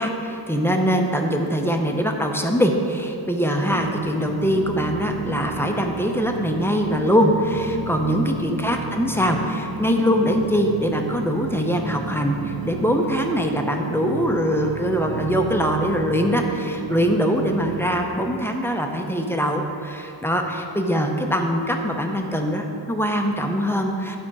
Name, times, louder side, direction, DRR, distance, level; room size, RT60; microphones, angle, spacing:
voice 1, 0.0-24.2, equal, 5° left, 3 dB, 0.6 m, -22 dB
sound 1, 3.7-18.1, right 4 dB, 55° right, 0.7 m, -32 dB
10.0 x 4.3 x 4.8 m, 2.7 s
wide cardioid pair, 85°, 43 cm